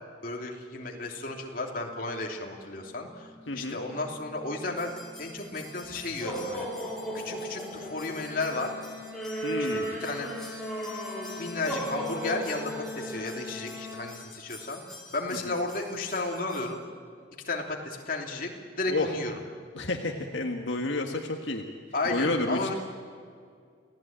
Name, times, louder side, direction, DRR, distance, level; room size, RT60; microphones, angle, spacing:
voice 1, 0.2-6.7 7.1-8.7 9.7-10.3 11.4-14.8 15.1-16.8 17.4-18.5 18.8-19.4 21.9-22.7, left 2 dB, 45° left, 1 dB, 3.0 m, -33 dB
Wind instrument woodwind instrument, 2.7-14.2, left 4 dB, 15° right, 3.2 m, -45 dB
voice 2, 3.5-3.8 9.4-10.0 15.5-15.6 18.9-19.1 19.7-21.6 22.1-22.7, left 2 dB, 75° left, 3 dB, 1.7 m, -30 dB
sound 1, 4.8-16.7, right 1 dB, 5° left, 5.0 m, -37 dB
29.0 x 17.0 x 8.9 m, 2.2 s
head